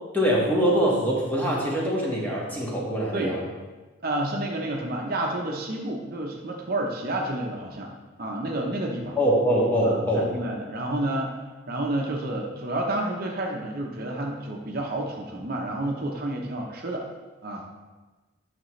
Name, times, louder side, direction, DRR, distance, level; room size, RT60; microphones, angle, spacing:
voice 1, 0.1-3.4 9.2-10.3, equal, 10° left, -4 dB, 1.5 m, -23 dB
voice 2, 4.0-7.9 8.2-9.2 9.8-11.3 11.7-17.0 17.4-17.6, right 1 dB, 50° right, 0 dB, 0.8 m, -30 dB
9.0 x 6.0 x 3.2 m, 1.2 s
head